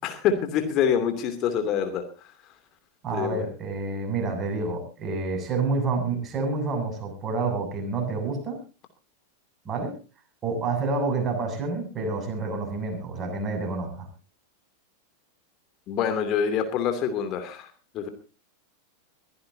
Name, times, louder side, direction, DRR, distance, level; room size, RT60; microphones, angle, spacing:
voice 1, 0.0-2.0 3.1-3.5 15.9-17.7 17.9-18.1, left 7 dB, 35° left, 8 dB, 2.8 m, -26 dB
voice 2, 3.0-8.6 9.7-9.9 10.4-14.1, right 3 dB, 25° right, 4 dB, 7.3 m, -28 dB
23.0 x 15.5 x 2.8 m, 0.34 s
figure-of-eight pair, 90°, 0 cm